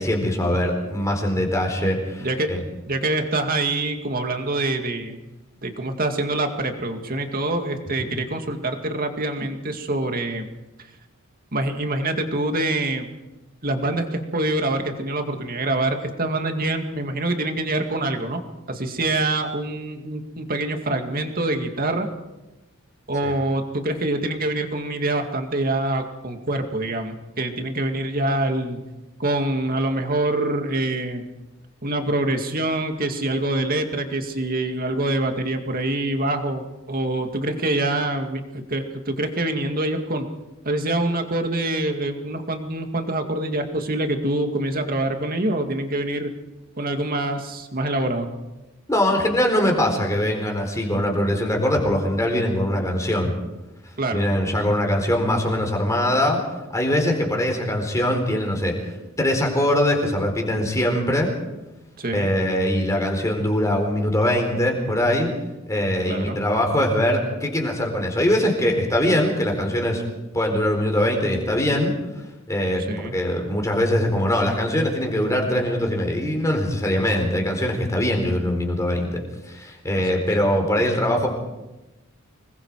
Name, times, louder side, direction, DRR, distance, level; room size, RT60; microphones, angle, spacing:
voice 1, 0.0-2.6 8.0-8.1 23.2-23.3 48.9-53.3 54.1-56.4 56.7-58.7 59.2-61.3 62.1-65.3 65.7-70.0 70.3-71.9 72.5-81.3, left 1 dB, 15° left, 2 dB, 4.3 m, -22 dB
voice 2, 2.2-2.5 2.9-5.2 5.6-10.5 11.5-13.1 13.6-18.4 18.7-22.1 23.1-28.8 29.2-31.2 31.8-40.3 40.7-46.3 46.8-48.3 54.0-54.2 62.0-62.3 66.1-66.4 72.9-73.2 80.1-80.2, right 2 dB, 45° right, 5 dB, 2.2 m, -25 dB
26.0 x 21.0 x 4.8 m, 1.0 s
head